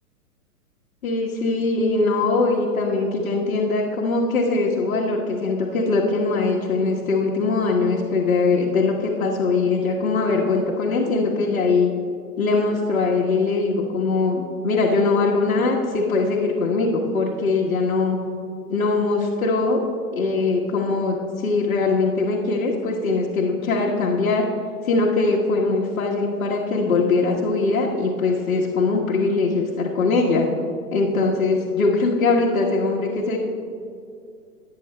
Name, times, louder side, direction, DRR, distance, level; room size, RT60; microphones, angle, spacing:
voice 1, 1.0-11.9 12.4-18.2 18.7-19.8 20.1-24.5 24.8-30.5 30.9-33.4, left 3 dB, 60° left, -4 dB, 1.4 m, -21 dB
17.5 x 9.0 x 2.2 m, 2.4 s
figure-of-eight pair, 115°, 47 cm